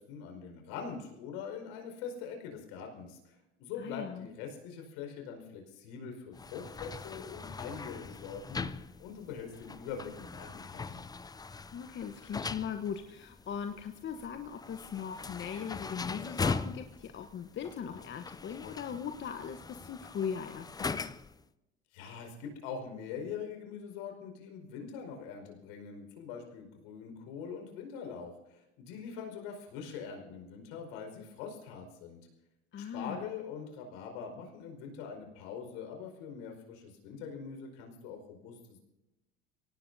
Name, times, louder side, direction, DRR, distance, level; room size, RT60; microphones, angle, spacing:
voice 1, 0.0-8.7 9.0-11.0 21.9-32.2 32.8-38.8, left 6 dB, 70° left, 3 dB, 5.0 m, -43 dB
voice 2, 3.8-4.3 11.7-21.1 32.7-33.3, left 7 dB, 35° left, 6 dB, 1.1 m, -39 dB
sound 1, 6.3-21.4, left 4 dB, 10° left, 0.5 m, -41 dB
24.0 x 18.0 x 2.7 m, 0.95 s
hypercardioid pair, 80°, 32 cm